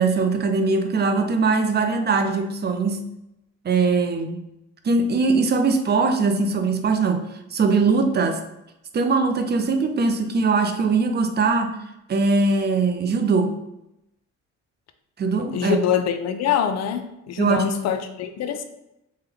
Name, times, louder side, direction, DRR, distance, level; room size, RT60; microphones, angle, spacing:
voice 1, 0.0-3.0 3.6-4.4 4.8-8.4 8.9-11.8 12.1-13.5 15.2-15.8 17.4-17.6, right 4 dB, 35° right, 6 dB, 0.5 m, -21 dB
voice 2, 15.5-18.6, left 8 dB, 60° left, 8 dB, 0.5 m, -24 dB
3.4 x 2.2 x 3.4 m, 0.87 s
cardioid pair, 90°, 30 cm